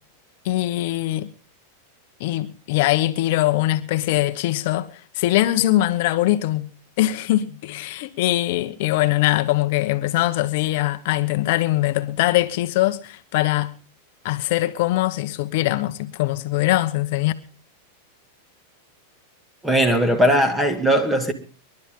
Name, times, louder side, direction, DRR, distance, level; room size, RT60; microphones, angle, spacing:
voice 1, 0.4-1.3 2.2-6.7 7.0-13.7 14.2-17.3, left 16 dB, 60° left, 1.1 m, -22 dB
voice 2, 19.6-21.3, equal, 5° right, 2.4 m, -19 dB
24.5 x 12.0 x 3.8 m
supercardioid pair, 140°, 0 cm